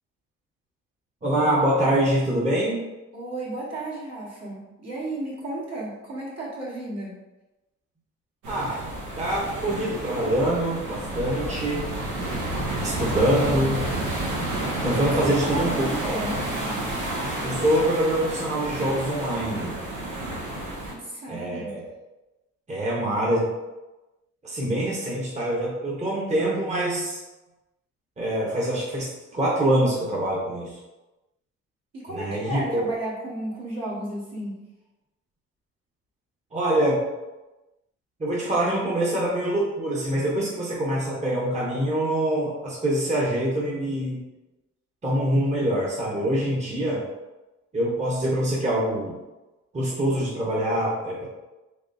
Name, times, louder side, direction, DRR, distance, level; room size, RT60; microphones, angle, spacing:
voice 1, 1.2-2.8 8.5-11.9 12.8-13.9 14.8-15.9 17.4-19.8 21.3-21.8 22.7-23.5 24.4-27.2 28.2-30.8 32.1-32.8 36.5-37.0 38.2-44.2 45.0-47.0 47.7-49.2 49.7-51.3, right 1 dB, 25° right, -5 dB, 0.9 m, -25 dB
voice 2, 3.1-7.2 15.4-16.4 20.9-21.8 31.9-34.6, right 1 dB, 60° right, -5 dB, 1.4 m, -33 dB
sound 1, 8.4-20.9, right 1 dB, 85° right, 1.1 m, -30 dB
3.6 x 3.2 x 2.6 m, 1.1 s
cardioid pair, 90°, 30 cm